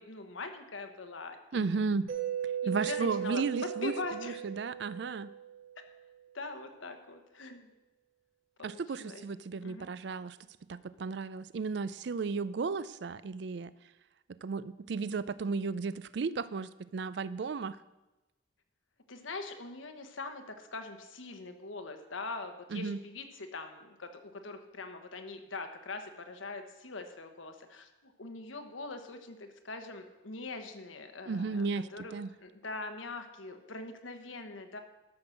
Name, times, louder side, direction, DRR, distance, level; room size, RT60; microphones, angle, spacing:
voice 1, 0.0-1.8 2.6-4.4 6.3-7.7 8.6-9.2 9.6-9.9 19.1-32.1 32.4-34.8, left 3 dB, 85° left, 7 dB, 1.2 m, -42 dB
voice 2, 1.5-2.1 2.7-5.3 8.6-10.4 10.7-13.7 14.4-17.8 22.7-23.0 31.3-32.3, right 4 dB, 60° right, 17 dB, 0.4 m, -34 dB
Mallet percussion, 2.1-5.8, right 9 dB, 90° right, 2.0 m, -37 dB
13.0 x 6.2 x 6.4 m, 1.0 s
head